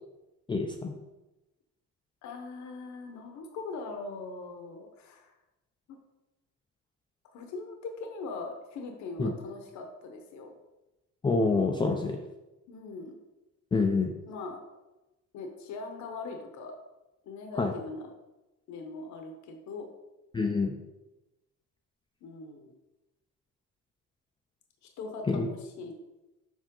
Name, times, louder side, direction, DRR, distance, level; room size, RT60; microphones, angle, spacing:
voice 1, 0.5-0.9 9.2-9.3 11.2-12.2 13.7-14.1 17.6-17.7 20.3-20.7 25.3-25.5, left 3 dB, 15° left, 2 dB, 0.4 m, -26 dB
voice 2, 2.2-5.3 7.3-10.5 12.7-13.2 14.3-14.6 15.3-16.8 17.2-18.1 18.7-19.9 22.2-22.8 25.0-25.9, left 3 dB, 65° left, 4 dB, 1.0 m, -41 dB
7.3 x 5.6 x 3.7 m, 1.0 s
cardioid pair, 170°, 31 cm